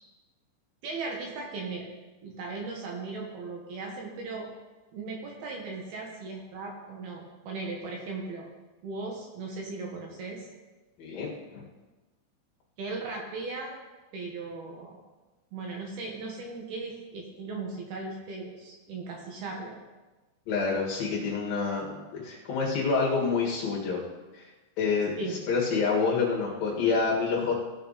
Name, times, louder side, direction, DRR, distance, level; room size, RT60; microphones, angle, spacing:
voice 1, 0.8-1.9 2.2-4.5 4.9-8.5 8.8-10.5 12.8-13.8 14.1-15.0 15.5-19.8 25.2-25.4, right 3 dB, 65° right, 0 dB, 2.9 m, -37 dB
voice 2, 11.0-11.6 20.5-24.0 24.3-24.5 24.8-25.1 25.5-27.6, left 4 dB, 60° left, -3 dB, 3.2 m, -27 dB
17.0 x 6.9 x 4.1 m, 1.2 s
omnidirectional pair, 5.4 m